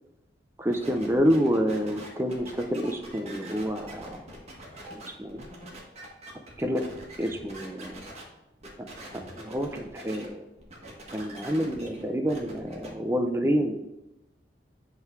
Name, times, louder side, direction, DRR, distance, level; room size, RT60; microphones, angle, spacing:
voice 1, 0.6-4.2 4.9-5.5 6.6-6.8 7.2-8.0 9.4-10.4 11.1-13.7, equal, 15° right, 4 dB, 0.6 m, -28 dB
sound 1, 0.7-8.2 8.6-10.3 10.6-12.9, right 1 dB, 40° right, 1.6 m, -44 dB
8.4 x 3.9 x 4.6 m, 0.95 s
head